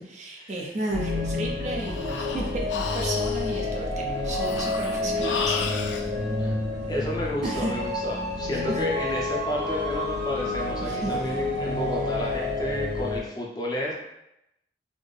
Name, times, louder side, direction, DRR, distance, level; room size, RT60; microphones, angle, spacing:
voice 1, 0.1-5.6 7.4-7.7 10.8-11.1, right 2 dB, 40° right, -1 dB, 0.5 m, -33 dB
sound 1, 0.9-13.2, left 2 dB, 80° right, 0.8 m, -29 dB
Breathing, 1.5-6.1, left 5 dB, 85° left, 0.4 m, -34 dB
voice 2, 6.9-13.9, left 1 dB, 25° left, -3 dB, 0.6 m, -31 dB
4.1 x 2.1 x 3.3 m, 0.86 s
head